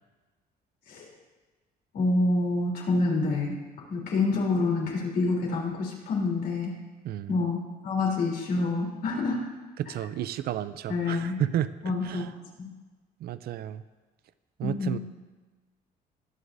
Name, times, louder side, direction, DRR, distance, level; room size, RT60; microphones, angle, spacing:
voice 1, 1.9-3.6 3.9-6.7 7.3-9.4 10.9-11.4 11.8-12.2 12.6-12.7 14.6-15.0, left 3 dB, 70° left, -2 dB, 3.5 m, -27 dB
voice 2, 9.8-11.7 12.0-12.3 13.2-13.8 14.6-15.0, right 11 dB, 65° right, 14 dB, 0.5 m, -31 dB
21.0 x 7.9 x 2.7 m, 1.3 s
cardioid pair, 130°, 17 cm